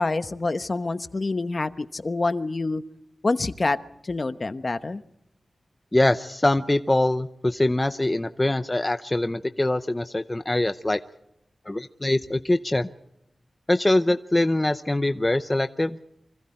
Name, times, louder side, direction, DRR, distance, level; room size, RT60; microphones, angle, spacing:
voice 1, 0.0-2.8 3.2-3.8 4.0-5.0, left 3 dB, 40° left, 11 dB, 1.0 m, -26 dB
voice 2, 5.9-11.0 11.7-12.9 13.7-16.0, left 1 dB, 20° left, 9 dB, 0.7 m, -23 dB
28.5 x 25.5 x 4.4 m, 0.80 s
wide cardioid pair, 105°, 0 cm